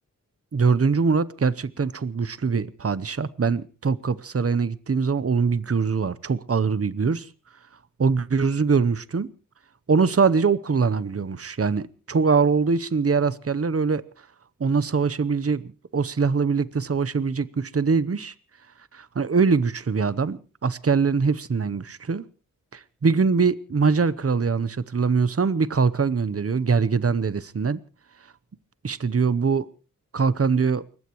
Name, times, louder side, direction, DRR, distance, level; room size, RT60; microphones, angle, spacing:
voice 1, 0.5-7.3 8.0-9.3 9.9-14.0 14.6-18.3 18.9-22.3 22.7-27.8 28.8-29.7 30.1-30.9, right 5 dB, 45° right, 0.9 m, -23 dB
29.5 x 15.5 x 3.0 m
wide cardioid pair, 85°, 32 cm